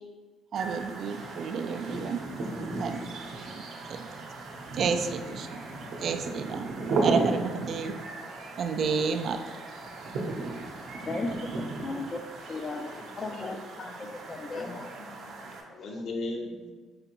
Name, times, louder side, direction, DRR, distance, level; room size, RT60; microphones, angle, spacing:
voice 1, 0.5-2.2 2.8-3.0 4.1-4.2 4.8-5.5 6.0-6.7 7.0-7.9 8.6-9.4, right 5 dB, 50° right, 7 dB, 0.3 m, -30 dB
sound 1, 0.6-15.6, right 3 dB, 65° right, 0.8 m, -35 dB
voice 2, 11.0-11.5 11.8-12.2 12.5-13.9 14.3-14.9, left 3 dB, 30° left, 6 dB, 0.4 m, -36 dB
voice 3, 14.5-16.7, left 2 dB, 55° left, 1 dB, 0.8 m, -38 dB
4.9 x 3.3 x 3.0 m, 1.3 s
cardioid pair, 130°, 0 cm